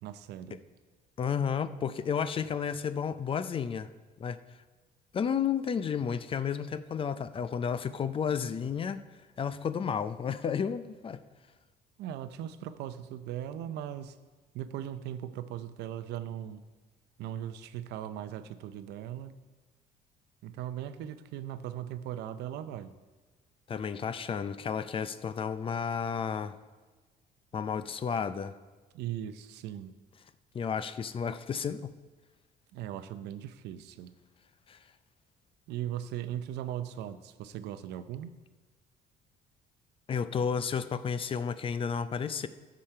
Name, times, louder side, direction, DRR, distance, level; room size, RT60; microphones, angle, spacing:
voice 1, 0.0-0.6 12.0-14.2 14.5-16.6 17.2-19.3 20.4-22.9 28.9-29.9 32.7-34.1 35.7-38.3, right 11 dB, 80° right, 12 dB, 0.6 m, -39 dB
voice 2, 1.2-3.9 4.2-4.4 5.1-9.0 9.4-11.2 23.7-26.6 27.5-28.5 30.5-31.9 34.7-34.8 40.1-42.5, left 7 dB, 30° left, 13 dB, 0.4 m, -32 dB
14.5 x 5.1 x 4.5 m, 1.3 s
cardioid pair, 110°, 17 cm